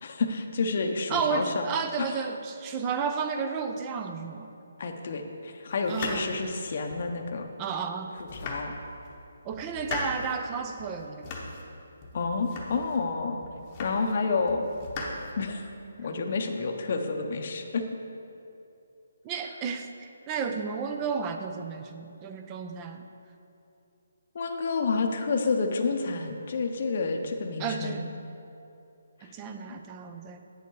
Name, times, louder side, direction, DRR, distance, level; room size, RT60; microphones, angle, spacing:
voice 1, 0.0-1.7 2.0-2.1 4.8-7.5 8.2-8.7 12.1-13.4 13.8-14.7 15.4-15.7 16.0-17.8 24.3-28.1 29.7-29.8, left 4 dB, 45° left, 4 dB, 0.7 m, -29 dB
voice 2, 1.1-4.5 5.9-6.3 7.6-8.1 9.4-11.3 16.0-16.2 19.2-23.0 27.6-28.1 29.2-30.4, right 6 dB, 15° right, 6 dB, 0.4 m, -32 dB
sound 1, 5.8-7.2 7.7-7.8 8.2-9.1 9.5-10.4 10.8-11.7 12.0-13.0 13.4-14.2 14.5-15.8, left 2 dB, 20° left, 0.9 m, -38 dB
8.4 x 6.9 x 4.6 m, 2.8 s
hypercardioid pair, 170°, 0 cm